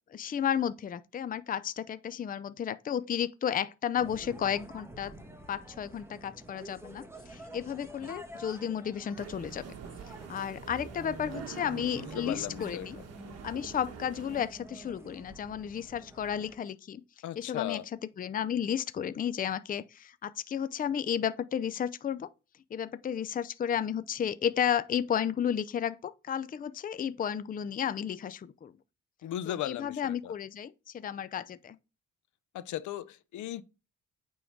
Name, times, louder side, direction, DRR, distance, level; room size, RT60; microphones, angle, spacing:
voice 1, 0.1-5.1 5.5-9.6 10.3-13.0 13.4-17.0 17.4-17.8 18.2-22.3 22.7-28.7 29.5-31.8, left 8 dB, 30° left, 0.5 m, -33 dB
sound 1, 4.0-16.6, right 1 dB, 10° right, 1.3 m, -48 dB
sound 2, 9.2-14.5, right 6 dB, 55° right, 1.2 m, -45 dB
voice 2, 11.9-13.0 17.2-17.8 29.2-30.3 32.5-33.6, left 12 dB, 75° left, 0.7 m, -37 dB
9.0 x 3.8 x 4.6 m
cardioid pair, 90°, 30 cm